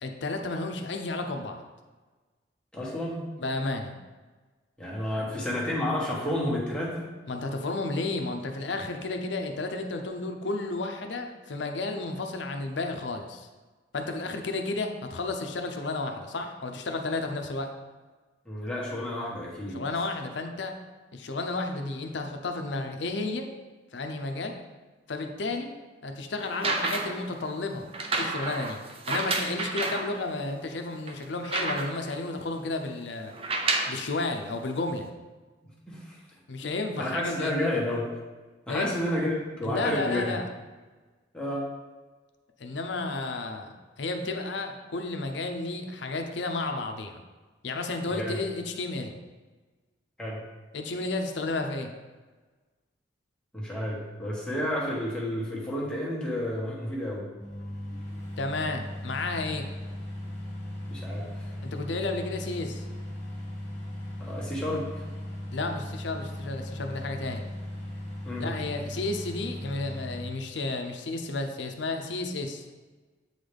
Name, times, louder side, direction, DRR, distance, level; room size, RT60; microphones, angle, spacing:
voice 1, 0.0-1.6 3.4-3.9 7.3-13.5 13.9-17.7 19.7-20.7 21.1-23.5 23.9-24.6 25.1-25.7 26.0-27.8 28.2-28.8 29.1-33.3 33.9-35.1 36.5-37.8 38.7-38.9 39.6-40.5 42.6-47.2 47.6-49.2 50.7-51.9 58.4-59.6 61.6-62.9 65.5-67.5 68.4-72.6, left 3 dB, 70° left, 5 dB, 0.6 m, -32 dB
voice 2, 2.7-3.2 4.8-7.1 18.4-19.8 35.9-36.2 37.0-38.1 38.7-40.4 41.3-41.7 48.1-48.4 50.2-50.4 53.5-57.3 60.9-61.5 64.2-65.0 68.3-68.6, left 1 dB, 5° left, -6 dB, 1.3 m, -31 dB
sound 1, 26.4-27.3 27.9-30.1 30.7-30.8 31.1-32.1 33.3-34.0 35.0-35.1, right 3 dB, 30° right, 0.5 m, -30 dB
sound 2, 57.4-70.3, left 1 dB, 70° right, 1.9 m, -37 dB
7.9 x 4.0 x 3.4 m, 1.3 s
head